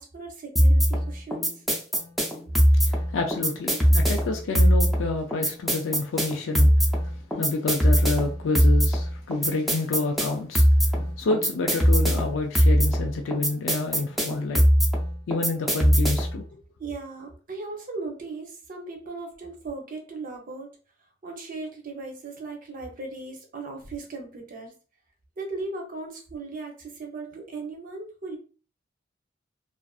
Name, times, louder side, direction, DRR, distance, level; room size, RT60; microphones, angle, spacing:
voice 1, 0.0-1.6 16.8-20.7 21.2-24.7 25.4-28.4, right 3 dB, 45° right, 0.7 m, -37 dB
sound 1, 0.6-16.4, equal, ahead, 0.5 m, -21 dB
voice 2, 2.8-10.7 10.9-14.7 15.3-16.4, left 3 dB, 90° left, 0.4 m, -29 dB
2.4 x 2.4 x 2.3 m
head